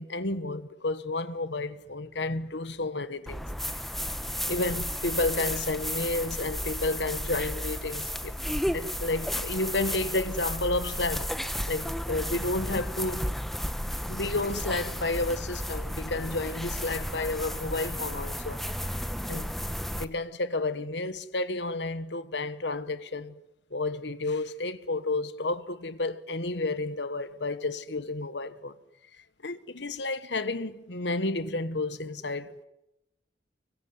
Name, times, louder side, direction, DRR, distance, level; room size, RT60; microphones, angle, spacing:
voice 1, 0.0-3.4 4.5-8.4 8.7-11.3 11.7-13.3 14.1-18.6 19.3-19.5 19.9-23.4 23.7-28.7 29.4-32.6, left 2 dB, 65° left, 1.4 m, -31 dB
sound 1, 3.3-20.1, equal, ahead, 1.1 m, -33 dB
24.5 x 23.5 x 9.6 m
head